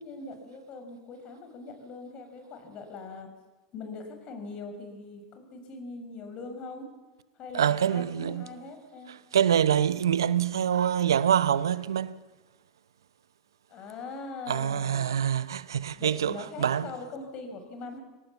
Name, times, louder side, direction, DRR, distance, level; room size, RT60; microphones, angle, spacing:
voice 1, 0.0-3.3 3.7-6.9 7.4-9.1 13.7-15.1 15.9-18.0, left 3 dB, 45° left, 5.9 m, -41 dB
voice 2, 7.5-8.4 9.1-12.1 14.5-16.9, right 9 dB, 80° right, 0.7 m, -25 dB
23.5 x 18.5 x 7.2 m
hypercardioid pair, 90°, 2 cm